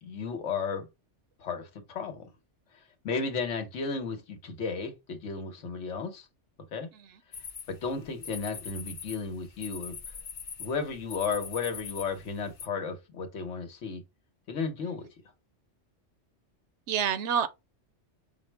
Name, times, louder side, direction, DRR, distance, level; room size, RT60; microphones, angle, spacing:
voice 1, 0.0-0.9 1.4-2.3 3.0-6.3 6.7-6.9 7.7-10.0 10.6-14.0 14.5-15.1, left 5 dB, 85° left, 1.3 m, -34 dB
sound 1, 7.3-12.7, left 6 dB, 55° left, 0.4 m, -43 dB
voice 2, 16.9-17.5, right 8 dB, 75° right, 0.9 m, -29 dB
5.6 x 2.1 x 4.5 m
omnidirectional pair, 1.2 m